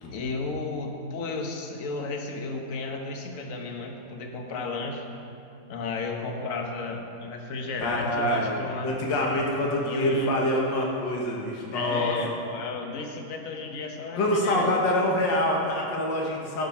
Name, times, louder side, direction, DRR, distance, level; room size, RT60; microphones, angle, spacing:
voice 1, 0.1-5.0 5.7-8.9 9.8-10.4 11.7-14.8, left 3 dB, 50° left, 3 dB, 1.3 m, -33 dB
voice 2, 7.8-12.2 14.2-16.7, left 1 dB, 80° left, -1 dB, 2.0 m, -26 dB
12.5 x 6.7 x 5.7 m, 2.7 s
omnidirectional pair, 1.9 m